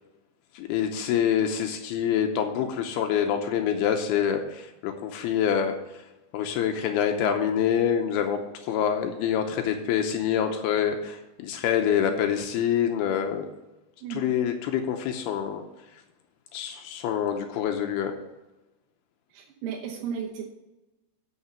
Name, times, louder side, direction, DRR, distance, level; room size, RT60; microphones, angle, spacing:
voice 1, 0.5-5.7 6.3-13.5 14.1-15.6 16.5-18.1, left 8 dB, 85° left, 5 dB, 2.7 m, -26 dB
voice 2, 19.3-20.5, right 7 dB, 70° right, -1 dB, 2.4 m, -34 dB
8.6 x 6.7 x 7.0 m, 1.0 s
omnidirectional pair, 4.6 m